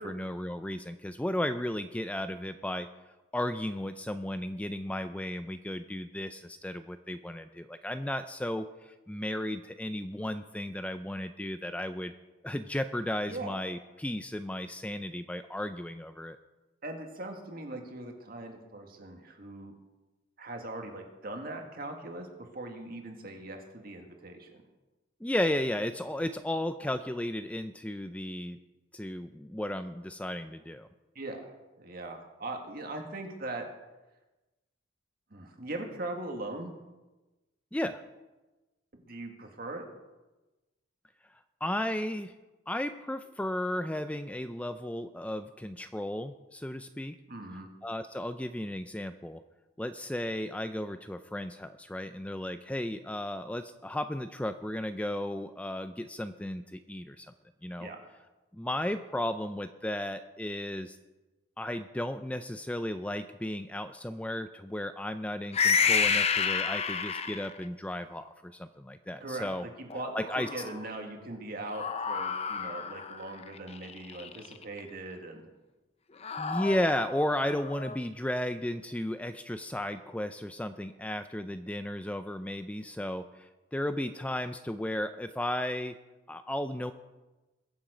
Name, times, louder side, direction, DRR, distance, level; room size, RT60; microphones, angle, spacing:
voice 1, 0.0-2.9 3.3-12.2 12.4-16.4 25.2-28.6 28.9-30.9 37.7-38.0 41.6-42.3 42.7-47.2 47.8-49.4 49.8-57.3 57.6-57.9 58.5-61.0 61.6-69.6 70.1-70.5 76.4-86.0 86.3-86.9, left 1 dB, 5° left, 10 dB, 0.4 m, -34 dB
voice 2, 16.8-19.7 20.4-22.3 22.5-24.6 31.2-33.7 35.3-36.7 38.9-39.8 47.3-47.7 57.8-58.0 69.2-69.5 69.8-70.1 70.5-75.4, right 2 dB, 50° right, 3 dB, 1.9 m, -40 dB
sound 1, 65.5-67.6 69.9-70.9 71.7-74.8 76.2-78.0, left 6 dB, 35° left, 0.7 m, -30 dB
22.0 x 7.5 x 5.1 m, 1.1 s
head